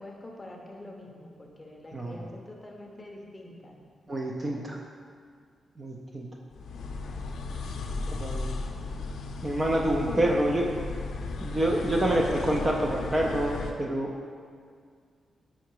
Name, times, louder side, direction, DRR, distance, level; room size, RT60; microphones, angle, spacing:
voice 1, 0.0-3.8 10.1-10.5 11.9-12.3, left 1 dB, 15° left, 0 dB, 0.7 m, -43 dB
voice 2, 4.1-4.8 5.8-6.3 8.1-8.5 9.4-10.6 11.4-14.1, right 1 dB, 20° right, -1 dB, 0.4 m, -27 dB
sound 1, 6.5-13.7, left 3 dB, 85° left, 0.5 m, -35 dB
5.7 x 4.7 x 4.6 m, 2.1 s
wide cardioid pair, 175°, 0 cm